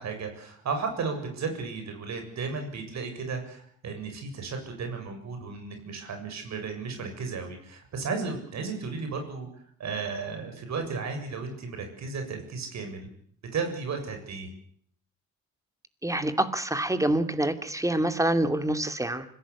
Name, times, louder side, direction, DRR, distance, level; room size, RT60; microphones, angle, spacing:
voice 1, 0.0-9.5 9.8-13.1 13.5-14.5, right 4 dB, 65° right, 5 dB, 7.1 m, -34 dB
voice 2, 16.0-19.3, right 1 dB, 10° right, 10 dB, 2.5 m, -26 dB
25.0 x 17.5 x 8.4 m, 0.63 s
cardioid pair, 90°, 30 cm